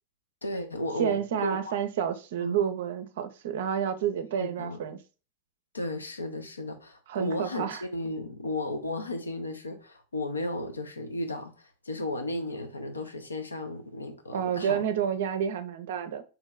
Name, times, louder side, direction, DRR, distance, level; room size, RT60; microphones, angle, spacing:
voice 1, 0.4-1.8 2.4-2.6 4.4-4.8 5.7-14.8, left 1 dB, 80° left, 0.7 m, -34 dB
voice 2, 1.0-5.0 7.1-7.8 14.3-16.2, right 8 dB, 55° right, 0.5 m, -29 dB
3.0 x 3.0 x 3.6 m
figure-of-eight pair, 90°, 0 cm